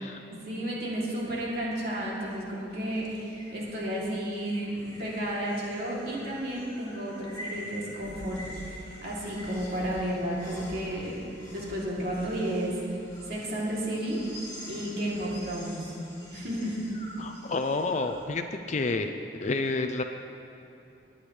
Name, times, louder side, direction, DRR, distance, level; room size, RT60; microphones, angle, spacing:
voice 1, 0.3-8.5 9.0-11.2 11.5-12.8 13.3-14.2 14.7-15.9 16.3-16.9, right 1 dB, 60° right, -5 dB, 2.9 m, -32 dB
sound 1, 1.3-18.2, equal, 20° left, 2.7 m, -46 dB
voice 2, 17.2-20.0, left 3 dB, 40° left, 7 dB, 0.4 m, -30 dB
21.0 x 8.8 x 3.3 m, 2.8 s
head